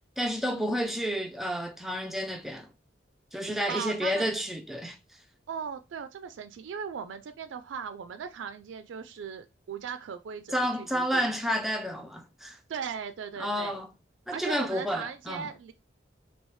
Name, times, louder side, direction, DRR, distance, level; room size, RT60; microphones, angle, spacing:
voice 1, 0.2-2.7 3.3-5.0 10.5-12.6 13.4-13.9 14.3-15.5, equal, ahead, 0.4 m, -30 dB
voice 2, 3.7-4.3 5.5-11.3 12.7-13.8 14.3-15.7, right 6 dB, 85° right, 0.3 m, -38 dB
3.1 x 2.8 x 3.1 m
head